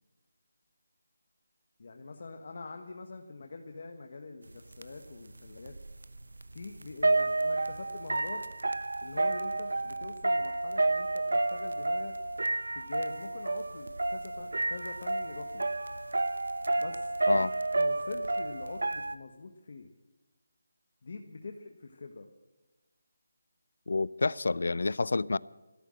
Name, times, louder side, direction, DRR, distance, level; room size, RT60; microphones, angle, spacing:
voice 1, 1.8-5.8 6.5-8.4 9.0-12.1 12.7-15.7 16.8-17.5 17.8-19.9 21.0-22.3, left 3 dB, 50° left, 1.3 m, -44 dB
sound 1, 4.5-4.6 4.8-19.1, right 2 dB, 90° right, 0.8 m, -31 dB
voice 2, 23.9-25.4, left 3 dB, 70° left, 0.5 m, -28 dB
15.5 x 13.5 x 6.4 m
figure-of-eight pair, 170°, 0 cm